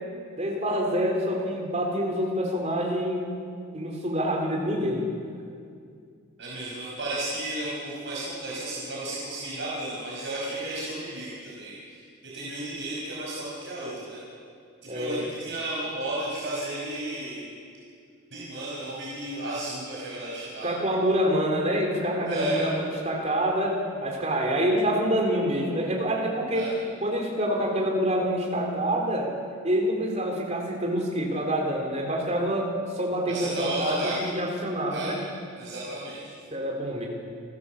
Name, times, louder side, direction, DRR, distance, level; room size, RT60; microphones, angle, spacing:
voice 1, 0.4-3.3 3.7-5.1 14.9-15.3 20.6-26.7 27.0-29.3 29.6-35.2 36.5-37.1, equal, 30° right, 0 dB, 3.8 m, -26 dB
voice 2, 6.4-14.2 14.9-17.5 18.3-20.7 22.2-22.6 26.5-26.7 33.3-34.1 34.9-35.1 35.6-36.2, right 1 dB, 55° right, -6 dB, 5.1 m, -33 dB
28.5 x 15.0 x 7.3 m, 2.3 s
head